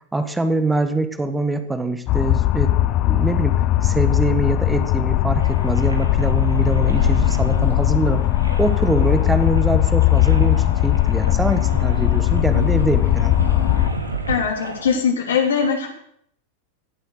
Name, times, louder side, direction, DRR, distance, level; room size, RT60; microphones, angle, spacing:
voice 1, 0.1-2.7 3.1-13.4, right 2 dB, 10° right, 9 dB, 1.3 m, -24 dB
sound 1, 2.1-13.9, left 14 dB, 40° left, 0.8 m, -19 dB
sound 2, 5.4-15.0, right 2 dB, 80° right, 2.5 m, -31 dB
voice 2, 14.3-15.9, left 6 dB, 65° left, 1 dB, 3.6 m, -21 dB
16.5 x 8.2 x 6.6 m, 0.69 s
figure-of-eight pair, 90°, 0 cm